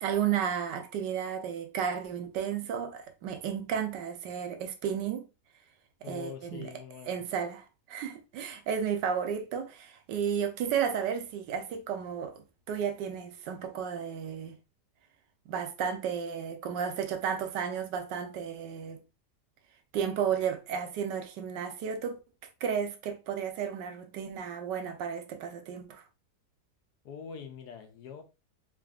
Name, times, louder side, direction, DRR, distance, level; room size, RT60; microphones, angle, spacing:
voice 1, 0.0-5.2 6.1-6.7 7.1-14.6 15.5-19.0 19.9-22.2 22.6-26.0, right 8 dB, 80° right, 1.3 m, -33 dB
voice 2, 6.0-7.2 27.0-28.2, left 7 dB, 70° left, 1.2 m, -44 dB
4.0 x 3.5 x 2.4 m
omnidirectional pair, 1.9 m